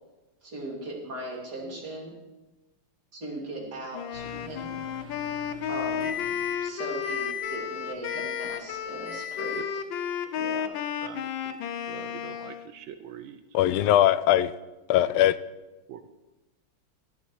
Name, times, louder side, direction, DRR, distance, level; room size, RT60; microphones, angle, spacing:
voice 1, 0.4-2.2 3.1-4.8 5.7-6.1 6.6-9.6 10.3-10.7, right 1 dB, 50° right, -2 dB, 3.6 m, -38 dB
voice 2, 3.6-3.9 8.1-8.3 9.5-9.6 11.0-11.6 11.9-13.4 15.9-16.1, right 9 dB, 75° right, 10 dB, 1.5 m, -44 dB
Wind instrument woodwind instrument, 3.9-12.7, left 8 dB, 70° left, 1.5 m, -33 dB
Microwave oven, 4.1-6.7 7.0-7.6 8.0-8.6 9.1-9.7, left 8 dB, 25° left, 7.0 m, -37 dB
voice 3, 13.5-14.5 14.9-15.4, left 12 dB, 85° left, 16 dB, 1.5 m, -20 dB
16.5 x 12.0 x 4.8 m, 1.1 s
omnidirectional pair, 2.3 m